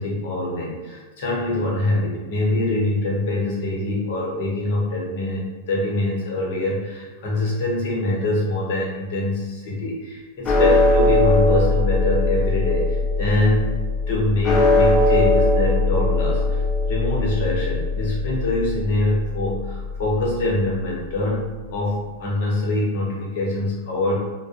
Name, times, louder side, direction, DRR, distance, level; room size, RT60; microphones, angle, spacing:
voice 1, 0.0-13.8 14.1-16.6 16.9-24.2, left 1 dB, 65° left, -3 dB, 0.9 m, -24 dB
sound 1, 10.4-20.9, left 2 dB, 25° left, 0.4 m, -21 dB
2.5 x 2.2 x 2.4 m, 1.3 s
hypercardioid pair, 130°, 0 cm